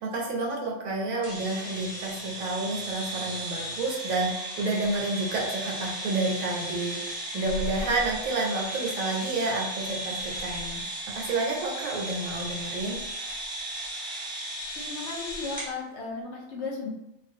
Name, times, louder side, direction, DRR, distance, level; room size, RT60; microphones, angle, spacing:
voice 1, 0.0-10.8 11.1-13.0, right 2 dB, 85° right, -2 dB, 1.0 m, -30 dB
sound 1, 1.2-15.7, right 1 dB, 20° right, 0.8 m, -35 dB
voice 2, 14.7-16.9, left 4 dB, 65° left, -1 dB, 0.8 m, -35 dB
2.4 x 2.2 x 2.6 m, 0.89 s
omnidirectional pair, 1.4 m